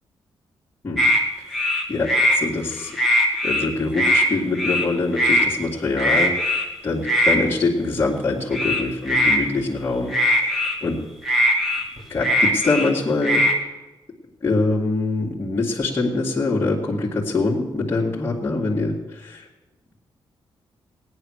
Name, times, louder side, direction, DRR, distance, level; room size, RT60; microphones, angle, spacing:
sound 1, 1.0-1.2 1.5-2.4 2.8-3.7 3.9-4.3 4.6-4.9 5.2-5.5 6.0-6.6 7.0-7.4 8.5-9.4 10.1-10.7 11.2-12.9 13.2-13.6, equal, ahead, 2.3 m, -20 dB
voice 1, 1.5-3.0 3.4-11.0 12.1-13.4 14.4-19.5, left 3 dB, 25° left, -7 dB, 2.2 m, -24 dB
17.5 x 9.8 x 6.5 m, 1.1 s
wide cardioid pair, 145°, 9 cm